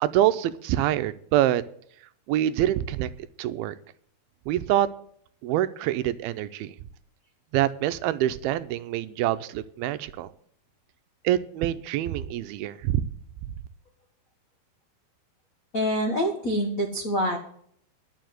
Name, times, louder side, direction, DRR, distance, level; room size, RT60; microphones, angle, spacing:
voice 1, 0.0-1.6 2.3-3.1 3.4-3.7 4.5-4.9 5.4-6.8 7.5-10.3 11.2-13.0, right 12 dB, 85° right, 12 dB, 2.5 m, -25 dB
voice 2, 15.7-17.4, equal, 85° left, 2 dB, 0.7 m, -26 dB
11.5 x 7.2 x 7.7 m, 0.64 s
omnidirectional pair, 4.4 m